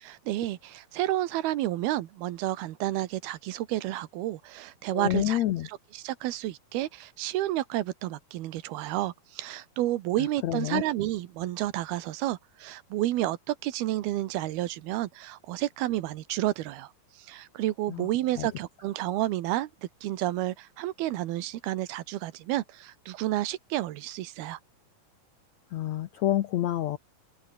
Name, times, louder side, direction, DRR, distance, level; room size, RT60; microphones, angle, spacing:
voice 1, 0.0-19.7 20.0-24.6, right 15 dB, 85° right, 3.1 m, -31 dB
voice 2, 4.9-5.7 10.4-10.8 17.9-18.1 18.4-18.5 25.7-27.0, left 13 dB, 80° left, 1.6 m, -28 dB
open air
omnidirectional pair, 4.3 m